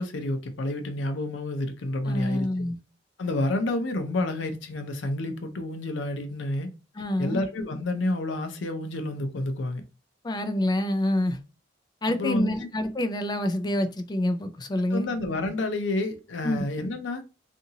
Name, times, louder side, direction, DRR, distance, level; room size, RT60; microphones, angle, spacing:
voice 1, 0.0-2.5 3.2-6.7 7.2-9.8 12.1-12.7 14.9-17.2, left 2 dB, 90° left, 0.6 m, -29 dB
voice 2, 2.1-2.8 7.0-7.4 10.2-11.4 12.0-15.1 16.4-16.6, left 1 dB, 25° left, 0.4 m, -27 dB
2.7 x 2.6 x 2.7 m
head